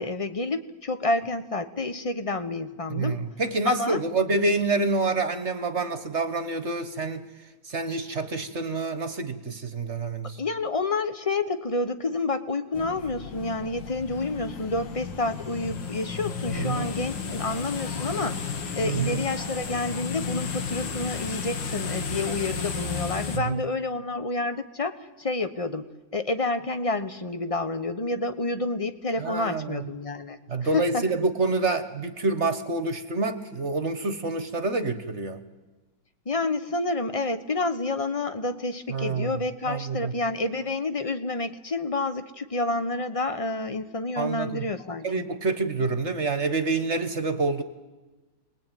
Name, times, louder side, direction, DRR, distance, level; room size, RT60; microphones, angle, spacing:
voice 1, 0.0-3.2 3.6-4.0 10.4-18.4 18.7-25.8 26.1-30.4 30.7-31.1 36.3-45.3, left 2 dB, 30° left, 10 dB, 0.6 m, -29 dB
voice 2, 2.9-7.3 7.6-10.4 16.5-16.9 18.8-19.2 23.3-23.6 29.2-29.9 30.5-35.4 38.9-40.1 44.2-44.7 45.0-47.6, right 3 dB, 40° right, 10 dB, 1.4 m, -27 dB
sound 1, 12.7-23.4, left 5 dB, 65° left, 2.2 m, -33 dB
28.5 x 21.0 x 9.2 m, 1.2 s
omnidirectional pair, 2.2 m